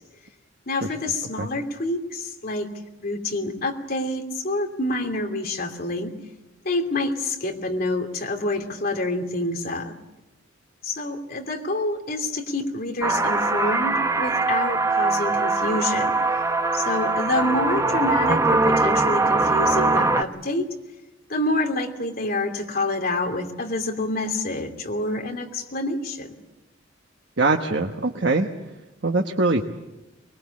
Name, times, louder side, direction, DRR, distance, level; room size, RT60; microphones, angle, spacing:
voice 1, 0.7-2.7 3.0-6.1 6.6-9.9 10.8-16.2 16.7-20.7 21.3-26.3, left 2 dB, 50° left, 3 dB, 2.9 m, -27 dB
sound 1, 13.0-20.2, right 3 dB, 15° right, 0.8 m, -22 dB
voice 2, 27.4-28.5 29.0-29.6, right 3 dB, 60° right, 3 dB, 1.3 m, -22 dB
24.5 x 21.5 x 8.5 m, 1.0 s
head